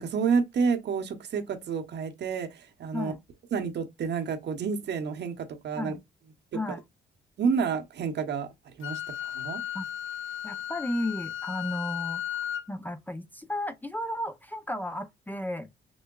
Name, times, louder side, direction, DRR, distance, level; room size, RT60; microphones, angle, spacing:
voice 1, 0.0-3.1 3.5-6.0 6.7-6.8 7.4-8.5 8.8-9.6, right 5 dB, 60° right, 1.0 m, -29 dB
Wind instrument woodwind instrument, 8.8-12.7, left 11 dB, 80° left, 0.6 m, -35 dB
voice 2, 10.4-15.7, left 1 dB, 10° left, 0.6 m, -34 dB
6.2 x 2.2 x 2.3 m
cardioid pair, 90°, 20 cm